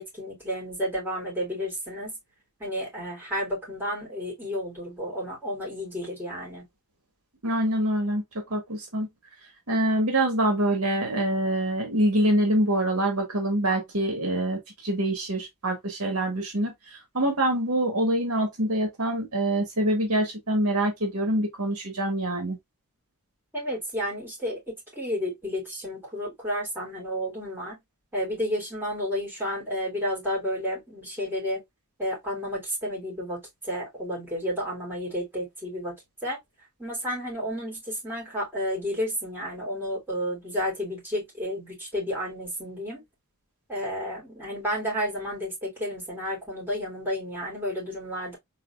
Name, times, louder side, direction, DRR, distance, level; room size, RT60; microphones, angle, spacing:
voice 1, 0.0-2.1 2.6-6.7 23.5-27.8 28.1-31.6 32.0-36.0 36.2-36.4 36.8-43.0 43.7-48.4, equal, 10° right, 3.2 m, -31 dB
voice 2, 7.4-8.2 8.5-9.1 9.7-16.7 17.1-22.6, right 1 dB, 75° right, 1.7 m, -25 dB
4.1 x 4.0 x 2.3 m
head